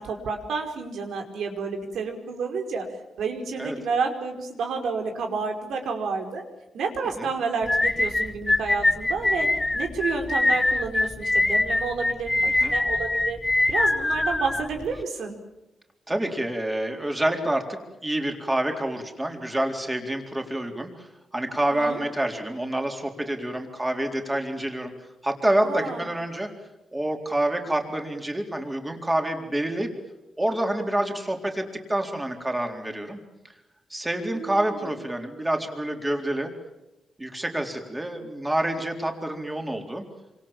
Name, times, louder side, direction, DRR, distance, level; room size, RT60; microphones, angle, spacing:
voice 1, 0.0-2.8 3.2-6.4 6.7-9.5 9.7-13.4 13.7-15.4 21.7-22.0 25.6-26.1 34.3-35.0, right 4 dB, 85° right, 4 dB, 5.1 m, -30 dB
sound 1, 7.7-15.0, left 2 dB, 15° left, 0.9 m, -23 dB
voice 2, 16.1-24.9 25.2-26.5 26.9-29.9 30.4-33.2 33.9-36.5 37.2-40.1, right 1 dB, 10° right, 3 dB, 4.0 m, -27 dB
28.0 x 26.0 x 7.4 m, 0.99 s
wide cardioid pair, 135°, 0 cm